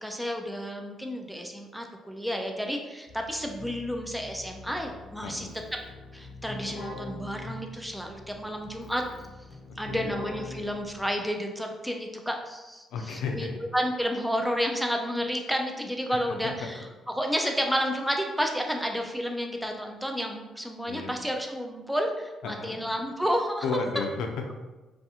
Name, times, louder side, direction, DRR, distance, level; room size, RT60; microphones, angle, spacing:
voice 1, 0.0-5.5 6.1-9.0 9.8-13.5 13.7-23.6 23.9-24.0, equal, ahead, 2 dB, 0.3 m, -31 dB
Keyboard (musical), 3.1-11.4, left 2 dB, 40° left, 0.6 m, -43 dB
voice 2, 5.2-5.6 9.9-10.2 12.9-13.6 16.1-16.9 20.8-21.2 22.4-22.8 23.6-24.5, left 4 dB, 85° left, 4 dB, 0.3 m, -34 dB
2.4 x 2.3 x 2.7 m, 1.1 s
cardioid pair, 90°, 0 cm